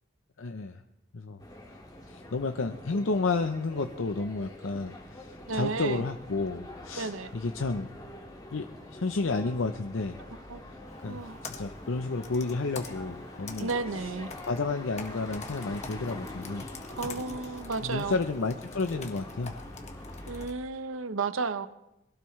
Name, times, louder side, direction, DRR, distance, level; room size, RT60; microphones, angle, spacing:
voice 1, 0.4-0.8 1.1-1.4 2.1-7.9 8.5-8.7 8.9-10.2 11.0-13.7 14.4-16.7 17.8-19.5, left 3 dB, 70° left, 7 dB, 0.7 m, -31 dB
sound 1, 1.4-20.5, left 1 dB, 20° left, 2.1 m, -45 dB
voice 2, 5.5-6.1 6.9-7.3 10.3-11.4 13.6-14.3 17.0-18.2 20.3-21.7, right 4 dB, 80° right, 12 dB, 0.8 m, -33 dB
Computer keyboard, 10.9-20.5, left 3 dB, 35° left, 1.4 m, -46 dB
22.5 x 16.5 x 3.2 m, 0.91 s
head